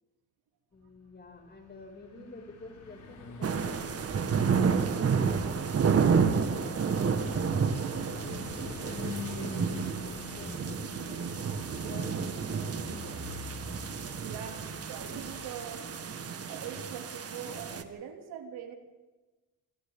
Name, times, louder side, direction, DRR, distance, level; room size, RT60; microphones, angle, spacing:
voice 1, 0.7-5.9 6.4-7.5 8.1-10.6 10.9-11.3 11.7-13.2, left 2 dB, 30° left, 3 dB, 6.5 m, -50 dB
Car passing by / Truck, 1.4-15.8, left 2 dB, 55° left, 6.9 m, -45 dB
sound 1, 3.4-17.8, right 6 dB, 40° right, 1.9 m, -30 dB
voice 2, 14.2-15.9 16.5-18.7, right 8 dB, 75° right, 3 dB, 3.1 m, -42 dB
26.0 x 25.5 x 3.9 m, 1.2 s
cardioid pair, 95°, 37 cm